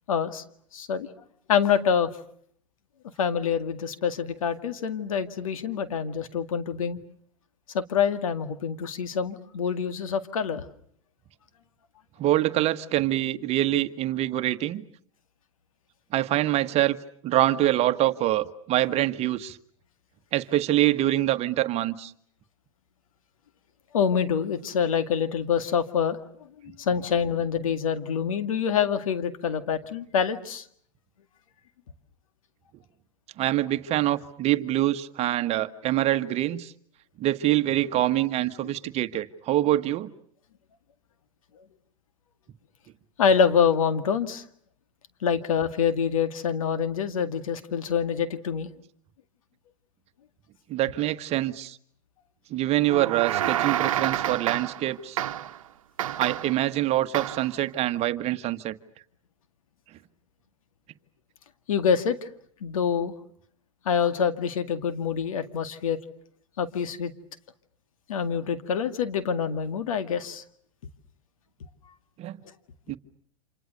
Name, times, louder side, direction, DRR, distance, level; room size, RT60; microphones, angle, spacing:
voice 1, 0.1-0.4 0.7-1.1 1.5-2.1 3.2-7.0 7.7-10.6 23.9-26.2 26.6-30.6 43.2-44.4 45.2-48.7 61.7-62.2 62.6-63.1 63.9-66.0 66.6-67.1 68.1-70.4, left 7 dB, 80° left, 10 dB, 2.1 m, -26 dB
voice 2, 12.2-14.8 16.1-17.0 17.2-19.6 20.3-22.1 33.4-36.7 37.2-40.1 50.7-51.8 52.5-55.2 56.2-58.8 72.2-72.4 72.9-73.0, right 14 dB, 40° right, 11 dB, 1.4 m, -25 dB
sound 1, 52.9-54.9 55.2-55.6 56.0-56.6 57.1-57.5, right 11 dB, 80° right, 1.1 m, -28 dB
28.5 x 27.5 x 6.6 m, 0.62 s
hypercardioid pair, 110°, 17 cm